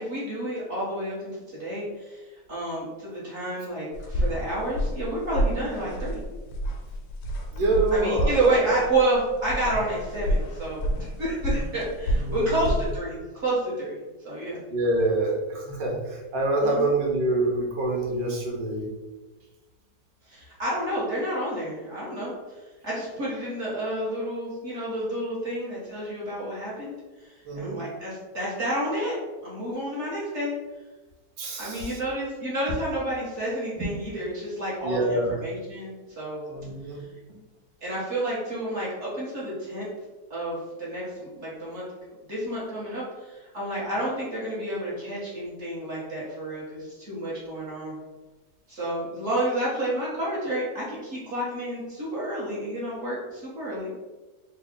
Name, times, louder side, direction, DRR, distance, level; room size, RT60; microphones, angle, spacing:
voice 1, 0.0-6.2 7.9-14.0 14.2-14.6 16.6-16.9 20.3-22.6 22.8-29.2 29.4-30.5 31.6-36.4 37.8-39.9 40.3-41.8 42.2-48.0 48.7-53.9, right 1 dB, 45° right, -7 dB, 1.3 m, -30 dB
sound 1, 3.9-13.0, right 1 dB, 90° left, 1.3 m, -29 dB
voice 2, 7.5-8.7 12.2-12.7 14.7-18.9 27.4-27.8 31.4-32.0 33.8-33.9 34.8-35.3 36.5-37.1, right 2 dB, 80° right, 0 dB, 1.5 m, -26 dB
3.6 x 2.3 x 3.6 m, 1.2 s
omnidirectional pair, 1.9 m